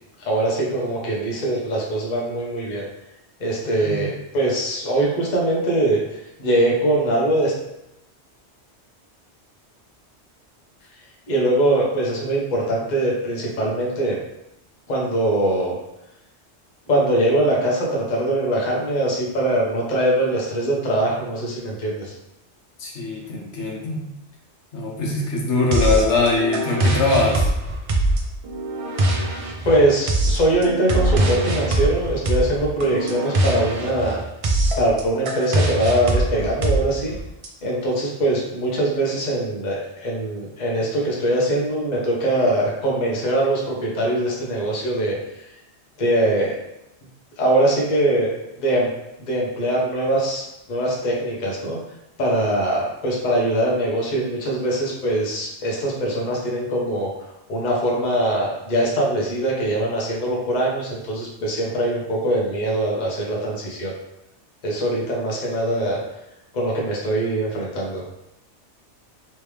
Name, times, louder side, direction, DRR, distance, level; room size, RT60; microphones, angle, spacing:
voice 1, 0.2-2.8 3.4-6.0 6.4-7.5 11.3-14.2 14.9-15.8 16.9-22.1 29.6-34.2 34.8-37.2 37.6-45.2 46.0-46.5 47.4-48.9 49.2-50.4 50.7-51.8 52.2-57.1 57.5-63.9 64.6-66.0 66.5-68.0, right 1 dB, 45° left, -3 dB, 0.9 m, -22 dB
voice 2, 3.6-4.1 22.8-24.0 24.7-27.5, left 3 dB, 80° left, -1 dB, 1.1 m, -22 dB
sound 1, 25.7-37.5, right 1 dB, 55° right, 0.3 m, -23 dB
3.3 x 3.2 x 3.2 m, 0.86 s
omnidirectional pair, 1.2 m